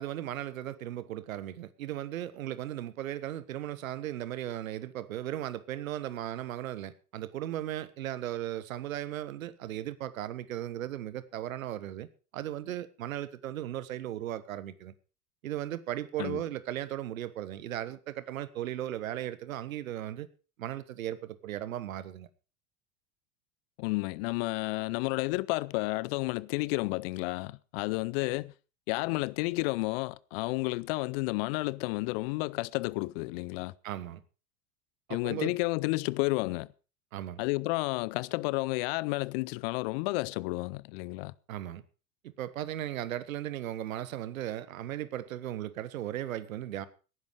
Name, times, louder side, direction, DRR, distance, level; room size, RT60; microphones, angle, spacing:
voice 1, 0.0-12.1 12.3-14.9 15.4-20.3 20.6-22.3 33.8-34.2 35.1-35.5 37.1-37.4 41.5-41.8 42.2-46.9, right 12 dB, 65° right, 1.3 m, -36 dB
voice 2, 23.8-28.5 28.9-33.7 35.1-36.7 37.4-41.3, left 23 dB, 45° left, 0.6 m, -31 dB
18.0 x 10.5 x 4.8 m
figure-of-eight pair, 80°, 44 cm